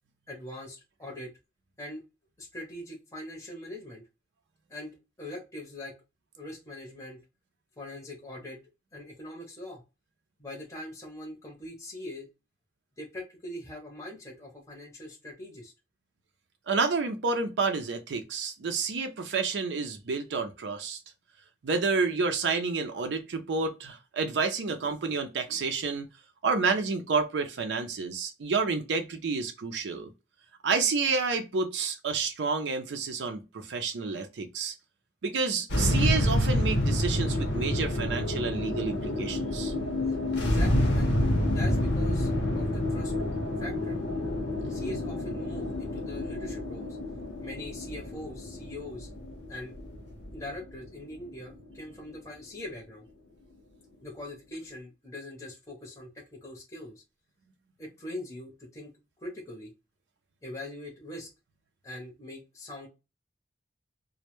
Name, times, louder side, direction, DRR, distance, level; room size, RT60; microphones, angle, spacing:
voice 1, 0.3-1.3 1.8-2.0 2.4-4.1 4.7-5.9 6.4-7.2 7.8-8.6 8.9-9.8 10.4-12.3 13.0-15.7 40.4-41.2 41.5-43.1 43.6-44.0 44.7-47.0 47.4-49.1 49.5-49.8 50.3-53.1 54.0-57.0 57.8-58.9 59.2-59.7 60.4-61.3 61.8-62.9, left 1 dB, 15° left, 0.6 m, -42 dB
voice 2, 16.7-21.0 21.6-26.1 26.4-30.1 30.6-34.7 35.2-39.7, right 4 dB, 85° right, 0.4 m, -29 dB
sound 1, 35.7-52.1, left 1 dB, 80° left, 0.8 m, -28 dB
2.1 x 2.1 x 2.9 m
head